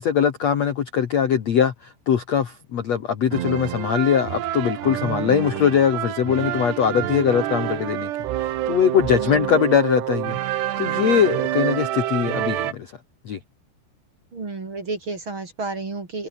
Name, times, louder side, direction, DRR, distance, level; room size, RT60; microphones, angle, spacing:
voice 1, 0.0-8.1 8.4-12.9 13.3-13.4, left 8 dB, 55° left, 2.1 m, -21 dB
sound 1, 3.3-12.7, right 13 dB, 75° right, 3.5 m, -27 dB
voice 2, 9.1-9.6 14.3-16.3, right 3 dB, 30° right, 3.7 m, -31 dB
omnidirectional pair, 5.2 m